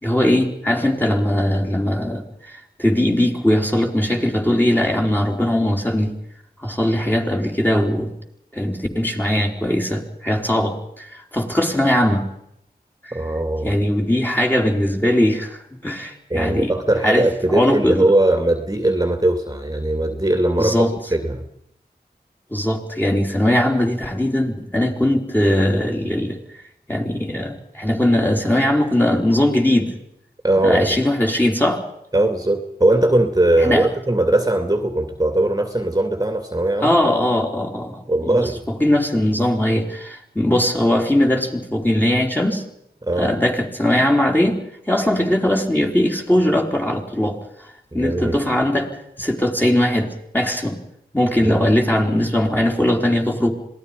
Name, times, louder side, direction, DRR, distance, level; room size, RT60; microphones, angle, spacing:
voice 1, 0.0-6.1 6.6-8.1 8.5-12.2 13.0-13.1 13.6-16.7 17.0-18.0 20.6-20.9 22.5-26.4 26.9-29.9 30.6-31.8 33.6-33.9 36.8-42.6 43.2-44.6 44.9-47.4 47.9-48.9 49.2-50.1 50.3-50.8 51.1-53.5, left 1 dB, 10° left, 1 dB, 4.3 m, -20 dB
voice 2, 13.1-13.7 16.3-21.4 30.4-31.0 32.1-37.0 38.1-38.6 43.0-43.3 47.9-48.4 51.4-51.7, right 1 dB, 20° right, 6 dB, 2.4 m, -20 dB
26.5 x 19.0 x 5.3 m, 0.76 s
wide cardioid pair, 45°, 17 cm